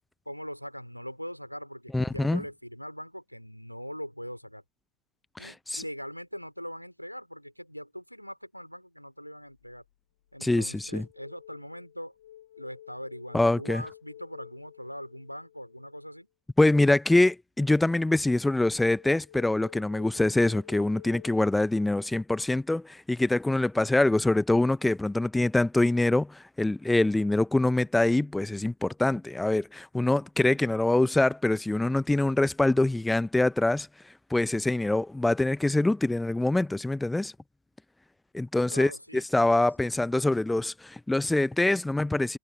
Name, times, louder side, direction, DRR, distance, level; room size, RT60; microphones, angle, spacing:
voice 1, 0.3-4.6 5.4-9.8 10.3-12.1 12.6-16.3 38.7-39.3 39.6-39.9, equal, 90° left, 3.6 m, -41 dB
voice 2, 1.9-2.4 5.4-5.8 10.4-11.1 13.3-13.8 16.6-33.9 34.3-37.3 38.3-38.9 39.3-42.4, left 2 dB, 5° left, 0.8 m, -24 dB
sound 1, 9.5-9.8 10.3-16.2 18.7-21.4, left 12 dB, 60° left, 2.0 m, -51 dB
figure-of-eight pair, 90°, 0 cm